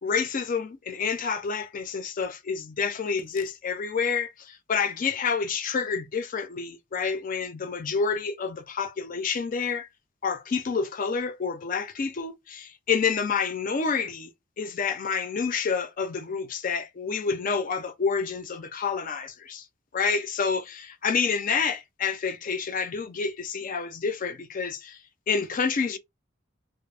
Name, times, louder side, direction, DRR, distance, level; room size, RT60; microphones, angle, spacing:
voice 1, 0.0-9.9 10.2-14.3 14.6-19.6 19.9-25.0 25.3-26.0, left 5 dB, 45° left, 0.4 m, -28 dB
2.4 x 2.0 x 3.2 m
head